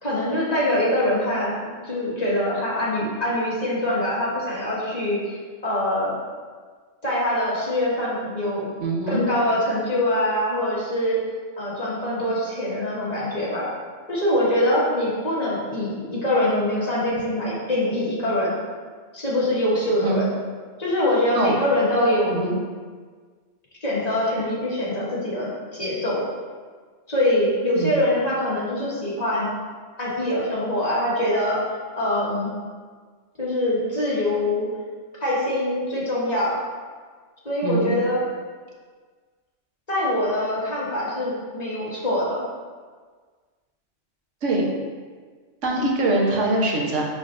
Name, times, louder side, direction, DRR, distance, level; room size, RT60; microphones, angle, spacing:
voice 1, 0.0-5.4 5.6-6.1 7.0-8.7 9.1-11.2 11.6-13.7 14.1-18.6 19.1-20.3 20.8-22.4 23.8-26.2 27.1-29.5 30.0-31.6 32.0-32.5 33.4-34.7 35.2-36.6 37.5-38.2 39.9-42.4, left 1 dB, 35° left, -8 dB, 1.9 m, -24 dB
voice 2, 8.8-9.2 20.0-20.2 21.3-21.5 22.3-22.6 27.8-28.0 37.6-37.9 44.4-44.7 45.6-47.1, right 2 dB, 80° right, -2 dB, 1.4 m, -23 dB
10.5 x 3.9 x 2.6 m, 1.5 s
omnidirectional pair, 1.2 m